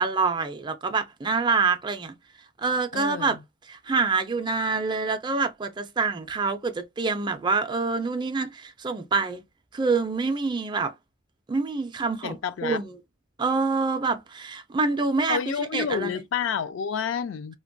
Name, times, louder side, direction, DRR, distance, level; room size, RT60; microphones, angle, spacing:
voice 1, 0.0-2.1 2.6-3.4 3.7-9.4 9.7-10.9 11.5-13.0 13.4-16.2, right 4 dB, 25° right, 0.3 m, -26 dB
voice 2, 2.9-3.4 12.2-12.8 15.3-17.5, left 7 dB, 70° left, 0.3 m, -29 dB
2.9 x 2.2 x 2.5 m
head